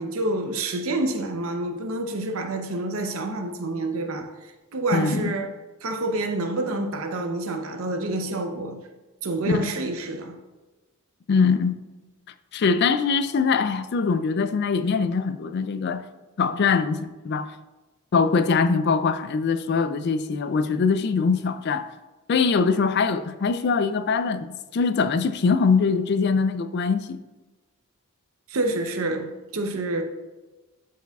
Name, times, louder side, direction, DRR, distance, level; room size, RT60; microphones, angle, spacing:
voice 1, 0.0-4.3 4.7-5.5 5.8-8.8 9.2-10.4 28.5-30.0, right 2 dB, 65° right, 0.7 m, -28 dB
voice 2, 4.9-5.3 9.5-9.7 11.3-11.8 12.5-16.0 16.4-17.5 18.1-21.9 22.3-27.2, left 5 dB, 50° left, 0.3 m, -22 dB
11.5 x 4.7 x 2.3 m
head